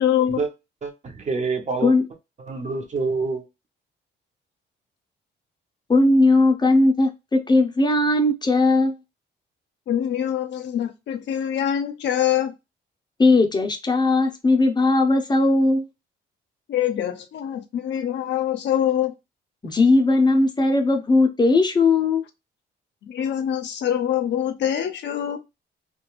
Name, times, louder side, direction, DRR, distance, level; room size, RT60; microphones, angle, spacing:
voice 1, 0.0-0.4 9.9-12.5 16.7-19.1 23.0-25.4, left 10 dB, 65° left, 0.5 m, -24 dB
voice 2, 0.8-1.9 2.5-3.5, right 4 dB, 35° right, 0.7 m, -26 dB
voice 3, 5.9-9.0 13.2-15.9 19.6-22.3, left 2 dB, 20° left, 0.6 m, -18 dB
2.3 x 2.2 x 2.9 m
cardioid pair, 90°, 20 cm